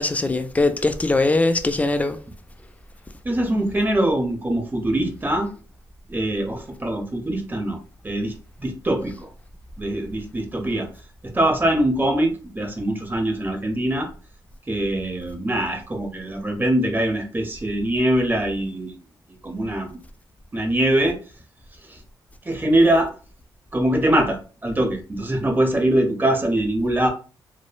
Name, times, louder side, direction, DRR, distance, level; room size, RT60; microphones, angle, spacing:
voice 1, 0.0-2.2, left 2 dB, 15° left, 0.4 m, -21 dB
voice 2, 3.2-5.5 6.1-7.8 8.0-9.3 9.8-10.9 11.2-14.1 14.7-18.9 19.4-20.0 20.5-21.2 21.8-22.0 22.4-23.1 23.7-27.1, right 1 dB, 20° right, 0.8 m, -23 dB
3.0 x 2.0 x 2.3 m
supercardioid pair, 60°, 9 cm